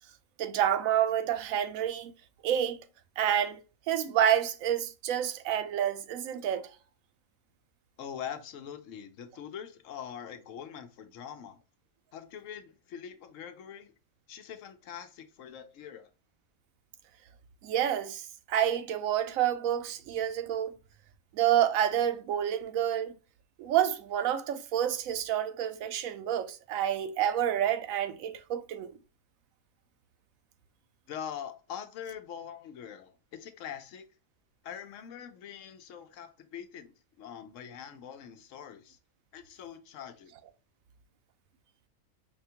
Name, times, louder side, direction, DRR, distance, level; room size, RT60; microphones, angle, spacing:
voice 1, 0.4-2.1 2.4-2.8 3.2-3.6 3.9-6.7 17.6-20.7 21.3-23.1 23.6-28.9, right 10 dB, 85° right, 1.0 m, -28 dB
voice 2, 8.0-11.6 12.1-13.9 14.3-16.1 31.1-34.1 34.6-39.0 39.3-40.3, left 8 dB, 75° left, 1.0 m, -43 dB
4.9 x 2.2 x 2.7 m
omnidirectional pair, 1.4 m